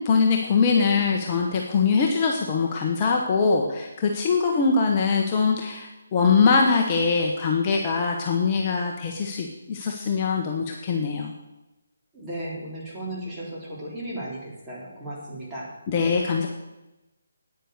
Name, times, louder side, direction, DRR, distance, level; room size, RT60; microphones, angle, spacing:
voice 1, 0.0-11.3 15.9-16.5, left 5 dB, 25° left, 0 dB, 1.2 m, -22 dB
voice 2, 12.1-15.8, right 1 dB, 15° right, -6 dB, 3.7 m, -35 dB
9.5 x 9.1 x 6.7 m, 1.0 s
figure-of-eight pair, 155°, 0 cm